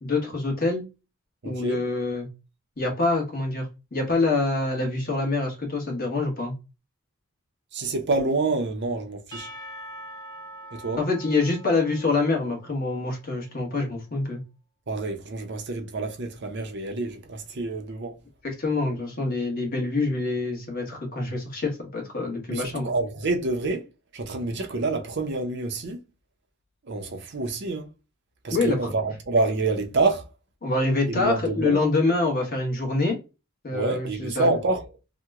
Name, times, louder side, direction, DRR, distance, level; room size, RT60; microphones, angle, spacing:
voice 1, 0.0-0.9 1.4-2.3 2.8-6.5 11.0-14.4 18.4-22.9 28.5-28.9 30.6-33.2 33.6-34.6, left 3 dB, 40° left, 1.1 m, -26 dB
voice 2, 1.4-1.8 7.7-9.5 10.7-11.0 14.9-18.1 22.5-23.8 24.1-26.0 26.9-27.9 28.4-30.3 31.1-31.8 33.7-34.8, right 3 dB, 50° right, 0.6 m, -27 dB
Percussion / Church bell, 9.3-13.5, right 1 dB, 20° left, 0.8 m, -43 dB
2.9 x 2.1 x 3.4 m
head